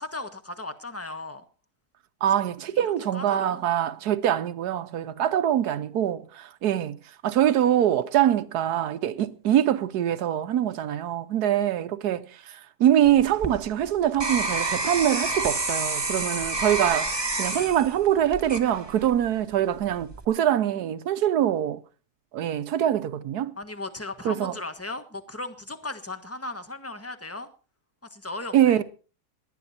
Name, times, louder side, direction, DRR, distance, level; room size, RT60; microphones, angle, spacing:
voice 1, 0.0-1.4 2.3-2.4 2.7-3.7 23.6-27.5 28.1-28.8, left 2 dB, 10° left, 1.2 m, -37 dB
voice 2, 2.2-7.0 7.2-21.8 22.3-23.5 24.2-24.5 28.5-28.8, right 11 dB, 85° right, 1.4 m, -24 dB
sound 1, 13.0-19.3 19.8-20.2, right 2 dB, 15° right, 1.6 m, -29 dB
19.0 x 11.5 x 4.3 m
omnidirectional pair, 1.6 m